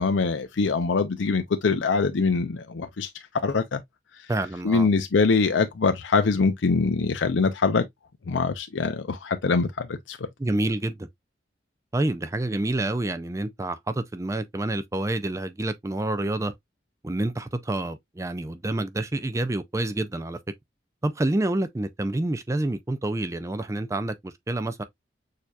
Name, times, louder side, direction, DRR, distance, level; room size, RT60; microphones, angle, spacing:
voice 1, 0.0-3.1 3.4-3.8 4.6-7.8 8.3-10.3, left 4 dB, 85° left, 0.5 m, -23 dB
voice 2, 4.3-4.9 10.4-11.1 11.9-16.5 17.0-20.4 21.0-24.8, right 2 dB, 15° right, 0.4 m, -28 dB
6.5 x 2.8 x 2.3 m
head